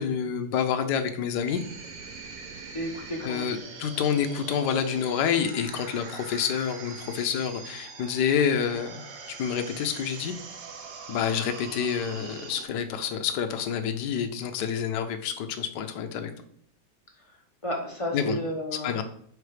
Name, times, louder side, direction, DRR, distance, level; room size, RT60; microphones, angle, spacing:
voice 1, 0.0-1.6 3.2-9.0 9.4-10.3 11.1-16.3 18.1-18.4 18.8-19.0, left 7 dB, 65° left, 6 dB, 1.2 m, -28 dB
sound 1, 1.5-12.7, right 5 dB, 60° right, 0.8 m, -42 dB
voice 2, 2.7-3.5 17.6-19.0, equal, 25° left, 0 dB, 0.8 m, -32 dB
4.7 x 4.7 x 4.9 m, 0.63 s
omnidirectional pair, 2.2 m